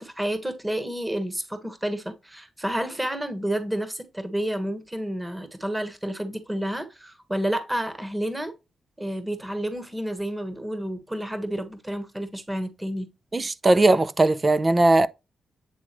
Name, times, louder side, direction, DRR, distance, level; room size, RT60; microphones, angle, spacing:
voice 1, 0.0-8.5 9.0-13.1, right 1 dB, 10° right, 1.3 m, -30 dB
voice 2, 13.3-15.1, right 2 dB, 30° right, 0.6 m, -19 dB
8.9 x 3.6 x 3.1 m
cardioid pair, 60°, 0 cm